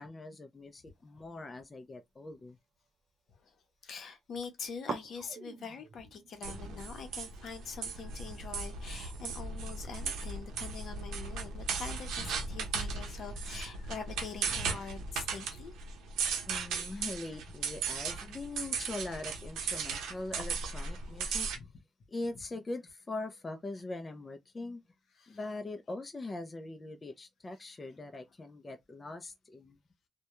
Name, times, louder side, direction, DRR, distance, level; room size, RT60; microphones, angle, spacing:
voice 1, 0.0-2.6 16.5-21.5 22.1-24.8 25.3-29.8, left 2 dB, 25° left, 0.4 m, -42 dB
sound 1, 1.3-3.1 3.4-4.0 4.3-4.4 4.8-11.7, right 5 dB, 50° right, 0.5 m, -49 dB
voice 2, 3.8-15.7 16.7-16.9 21.6-21.7 25.2-25.4, left 5 dB, 60° left, 0.7 m, -44 dB
sound 2, 6.4-21.6, right 5 dB, 90° right, 0.7 m, -37 dB
2.2 x 2.1 x 2.9 m
cardioid pair, 90°, 0 cm